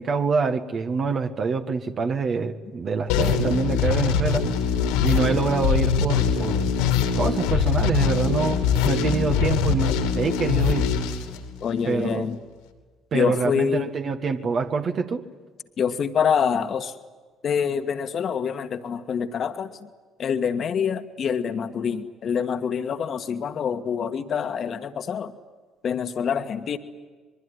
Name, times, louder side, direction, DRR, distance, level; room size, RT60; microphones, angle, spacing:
voice 1, 0.0-4.5 5.0-6.7 7.2-10.9 11.9-12.3 13.1-15.2, right 5 dB, 50° right, 6 dB, 1.8 m, -25 dB
sound 1, 3.1-12.0, left 7 dB, 80° left, 2.8 m, -23 dB
voice 2, 11.6-12.4 13.1-13.9 15.8-16.9 17.4-19.7 20.2-25.3 25.8-26.8, left 7 dB, 50° left, 8 dB, 1.7 m, -26 dB
24.5 x 22.5 x 9.9 m, 1.4 s
hypercardioid pair, 55°, 0 cm